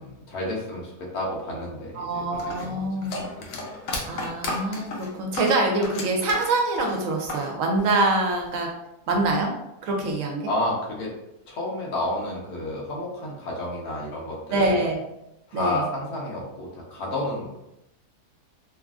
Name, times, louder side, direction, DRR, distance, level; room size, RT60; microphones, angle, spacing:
voice 1, 0.0-2.3 2.6-2.9 3.4-3.6 3.9-4.0 10.5-11.1 11.5-14.8 15.5-17.5, left 1 dB, 90° left, -2 dB, 1.3 m, -30 dB
voice 2, 1.9-3.3 4.1-8.7 9.1-9.5 9.8-10.5 14.5-15.0 15.5-15.8, right 2 dB, 70° right, 1 dB, 0.9 m, -25 dB
sound 1, 2.4-7.5 7.8-8.6, left 2 dB, 70° left, 0.9 m, -33 dB
3.1 x 2.4 x 2.3 m, 0.88 s
omnidirectional pair, 1.6 m